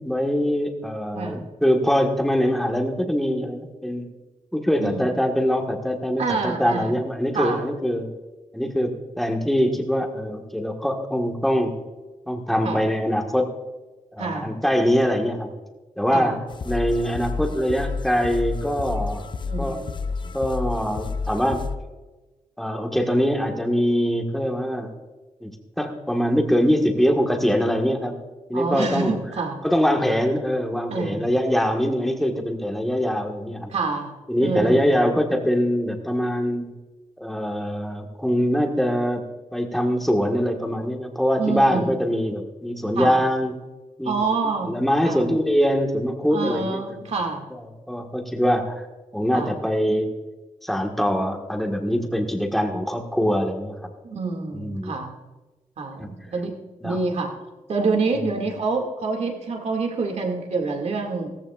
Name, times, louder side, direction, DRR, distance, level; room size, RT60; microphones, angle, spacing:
voice 1, 0.0-4.1 4.5-8.1 8.5-11.8 12.3-13.5 14.1-15.5 16.0-19.3 19.6-19.8 20.3-21.6 22.6-24.9 25.4-28.2 28.5-29.2 29.6-33.7 34.3-36.7 37.2-39.2 39.5-43.6 44.0-44.2 44.4-47.0 47.5-48.8 49.1-50.1 50.6-53.9 54.5-54.9 56.0-56.1 56.8-57.0 58.1-58.4, equal, ahead, 2 dB, 1.5 m, -23 dB
voice 2, 6.2-6.9 7.3-7.7 12.6-12.8 14.2-14.6 16.1-16.4 19.5-19.9 28.5-29.6 30.9-31.4 33.7-34.1 34.4-34.9 41.4-42.0 43.0-43.2 44.0-44.8 45.0-45.2 46.3-47.4 49.3-49.6 54.0-55.2 55.8-56.5 56.8-57.3 57.7-61.3, right 4 dB, 60° right, 2 dB, 2.2 m, -27 dB
sound 1, 16.5-21.8, left 4 dB, 40° left, 0.5 m, -30 dB
17.0 x 14.5 x 2.4 m, 1.2 s
wide cardioid pair, 130°, 13 cm